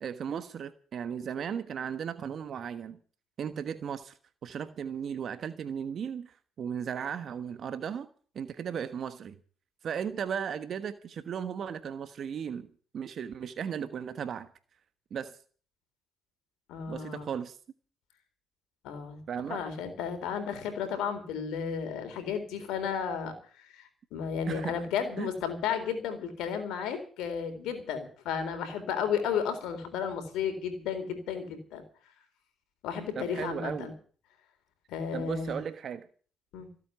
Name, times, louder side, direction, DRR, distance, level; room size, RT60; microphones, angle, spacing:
voice 1, 0.0-3.0 3.4-4.1 4.4-8.1 8.3-9.4 9.8-12.7 12.9-14.5 15.1-15.4 16.9-17.6 19.3-19.6 24.5-24.8 25.2-25.3 33.1-33.9 35.1-36.1, right 7 dB, 60° right, 1.3 m, -36 dB
voice 2, 16.7-17.3 18.8-19.2 19.5-31.8 32.8-33.9 34.9-35.6 36.5-36.7, left 7 dB, 80° left, 3.9 m, -33 dB
16.0 x 8.4 x 9.5 m
supercardioid pair, 65°, 0 cm